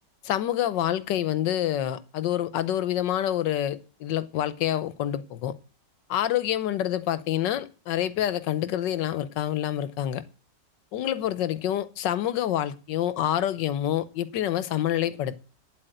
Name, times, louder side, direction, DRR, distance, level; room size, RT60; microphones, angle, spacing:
voice 1, 0.2-5.5 6.1-10.2 10.9-15.4, left 11 dB, 90° left, 1.5 m, -27 dB
9.6 x 7.9 x 7.8 m
omnidirectional pair, 1.9 m